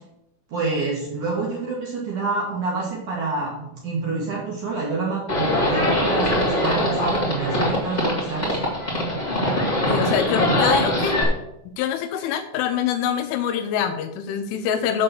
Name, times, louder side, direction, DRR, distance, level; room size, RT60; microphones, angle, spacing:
voice 1, 0.5-8.6, right 3 dB, 55° right, -4 dB, 2.5 m, -27 dB
Livestock farm animals working animals, 5.3-11.2, left 1 dB, 20° left, 1.2 m, -22 dB
voice 2, 9.9-11.2 11.8-15.0, left 9 dB, 80° left, 8 dB, 3.0 m, -25 dB
7.6 x 6.8 x 6.9 m, 0.87 s
omnidirectional pair, 5.8 m